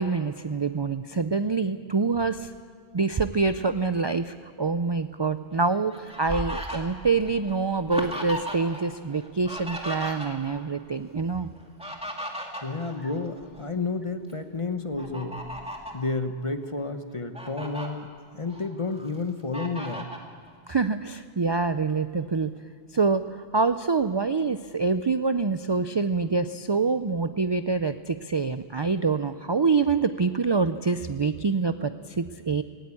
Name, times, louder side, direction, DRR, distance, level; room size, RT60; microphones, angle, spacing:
voice 1, 0.0-2.5 2.9-11.5 20.7-22.5 22.9-32.6, right 4 dB, 35° right, 11 dB, 0.4 m, -26 dB
Fowl, 5.5-8.8 9.1-10.6 11.6-13.7 14.1-14.3 15.0-16.0 16.6-16.7 17.1-17.9 18.4-19.1 19.5-20.3, equal, 5° right, 2.4 m, -36 dB
voice 2, 12.6-15.5 15.9-20.1, left 3 dB, 30° left, 8 dB, 1.1 m, -31 dB
18.5 x 18.0 x 8.5 m, 2.1 s
omnidirectional pair, 1.1 m